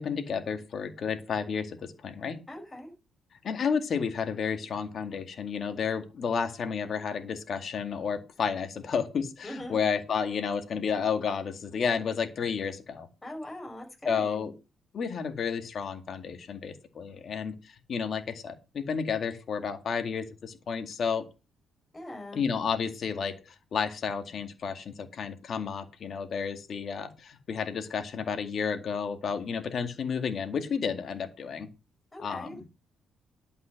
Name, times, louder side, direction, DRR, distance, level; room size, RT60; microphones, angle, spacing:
voice 1, 0.0-2.4 3.4-13.1 14.0-14.5 14.9-21.2 22.3-23.4 23.7-31.7 32.2-32.6, left 6 dB, 55° left, 8 dB, 2.1 m, -31 dB
voice 2, 2.5-2.9 9.4-9.9 13.2-14.5 21.9-22.5 32.1-32.6, left 1 dB, 15° left, 2 dB, 5.3 m, -41 dB
11.5 x 5.6 x 6.6 m, 0.29 s
cardioid pair, 90°, 0 cm